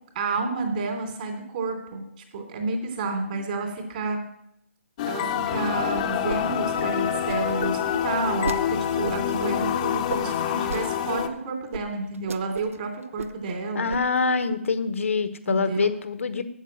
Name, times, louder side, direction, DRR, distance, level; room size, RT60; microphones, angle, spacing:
voice 1, 0.1-2.0 2.3-4.2 5.0-13.9 15.5-15.9, right 3 dB, 40° right, 4 dB, 3.1 m, -30 dB
sound 1, 5.0-11.3, left 9 dB, 30° left, 0.8 m, -26 dB
sound 2, 5.9-6.4 6.6-8.6 9.0-9.5 10.1-10.8 11.2-11.3 11.7-11.8 12.1-12.8 13.0-13.6 13.9-14.3, right 4 dB, 80° right, 0.8 m, -35 dB
voice 2, 13.7-16.4, left 5 dB, 70° left, 11 dB, 1.0 m, -25 dB
8.2 x 8.1 x 8.7 m, 0.78 s
hypercardioid pair, 155°, 7 cm